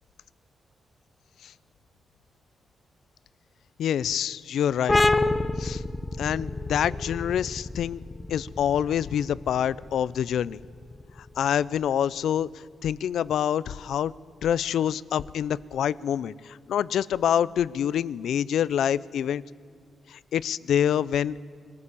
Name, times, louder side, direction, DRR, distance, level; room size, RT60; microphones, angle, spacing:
voice 1, 3.8-5.0 5.6-5.8 6.2-8.0 8.3-10.6 11.4-12.5 12.8-14.1 14.4-19.4 20.1-21.4, left 9 dB, 85° left, 20 dB, 0.5 m, -26 dB
sound 1, 4.9-12.2, left 2 dB, 15° left, 0.8 m, -29 dB
23.0 x 14.5 x 8.4 m, 2.3 s
wide cardioid pair, 135°, 0 cm